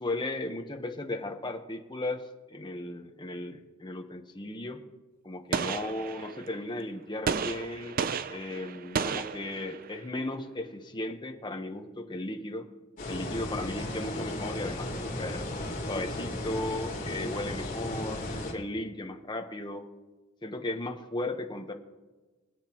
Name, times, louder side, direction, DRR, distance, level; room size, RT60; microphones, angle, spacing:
voice 1, 0.0-2.2 2.5-4.8 5.2-8.0 8.3-12.7 13.1-15.5 15.9-19.8 20.4-21.7, left 2 dB, 20° left, 4 dB, 1.0 m, -36 dB
Gunshot gunfire, 5.5-6.6 7.3-10.0, right 6 dB, 45° right, 0.5 m, -33 dB
sound 1, 13.0-18.5, left 1 dB, 40° left, 3.3 m, -35 dB
24.5 x 8.2 x 3.0 m, 1.2 s
head